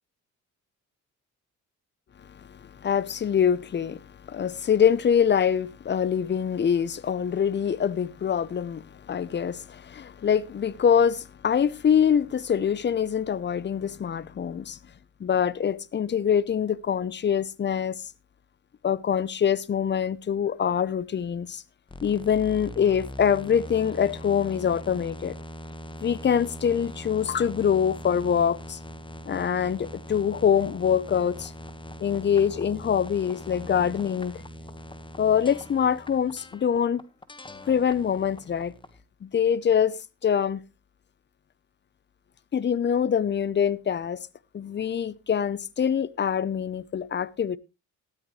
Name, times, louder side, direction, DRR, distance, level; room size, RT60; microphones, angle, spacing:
voice 1, 2.5-14.8 15.2-18.0 18.8-21.6 22.0-25.4 26.0-28.8 29.3-31.5 32.0-34.4 35.2-37.0 37.7-38.7 39.2-40.0 40.2-40.6 42.5-44.2 44.5-47.6, left 8 dB, 35° left, 0.7 m, -24 dB
sound 1, 21.9-39.0, left 1 dB, 15° left, 1.4 m, -41 dB
13.0 x 13.0 x 3.1 m
cardioid pair, 90°, 30 cm